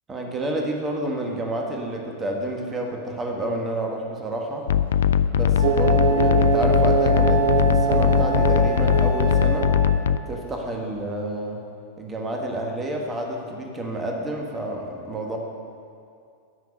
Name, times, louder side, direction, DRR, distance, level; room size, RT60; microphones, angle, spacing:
voice 1, 0.1-4.7 5.3-9.7 10.3-11.6 12.0-15.4, right 1 dB, 20° right, 1 dB, 1.4 m, -29 dB
sound 1, 4.7-10.2, left 8 dB, 65° left, 0.3 m, -20 dB
Wind instrument woodwind instrument, 4.9-5.0 5.5-10.2, right 2 dB, 60° right, 2.4 m, -35 dB
sound 2, 5.6-10.3, right 6 dB, 45° right, 0.5 m, -24 dB
12.5 x 5.9 x 7.8 m, 2.4 s
figure-of-eight pair, 90°, 0 cm